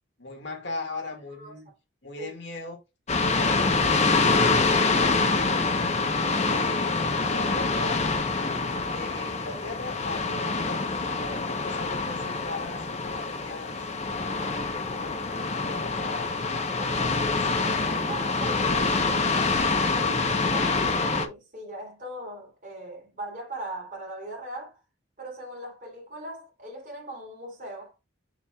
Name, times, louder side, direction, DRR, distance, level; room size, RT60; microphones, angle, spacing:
voice 1, 0.2-1.7 2.0-2.8 3.2-5.7 6.4-8.1 8.8-13.9 14.5-16.3 17.0-17.6, left 3 dB, 60° left, 2.0 m, -39 dB
sound 1, 3.1-21.3, left 3 dB, 35° left, 0.8 m, -26 dB
voice 2, 16.5-19.5 19.8-24.8 25.2-27.9, right 1 dB, 40° right, 3.5 m, -40 dB
7.2 x 7.0 x 2.3 m
head